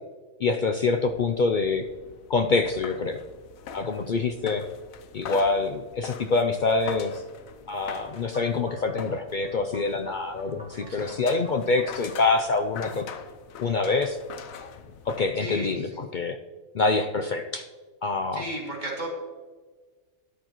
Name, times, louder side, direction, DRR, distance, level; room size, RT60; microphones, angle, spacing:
voice 1, 0.4-1.9 2.3-3.2 3.7-4.6 5.1-7.2 7.7-13.0 13.6-14.2 15.1-16.4 16.7-17.7 18.0-18.4, left 3 dB, 60° left, 6 dB, 0.5 m, -25 dB
sound 1, 0.9-15.8, left 7 dB, 85° left, 1.2 m, -43 dB
sound 2, 7.8-12.9, equal, 5° right, 2.0 m, -49 dB
voice 2, 10.7-11.1 15.4-15.9 18.3-19.1, right 1 dB, 35° right, -4 dB, 3.1 m, -34 dB
13.0 x 10.5 x 3.0 m, 1.4 s
omnidirectional pair, 1.4 m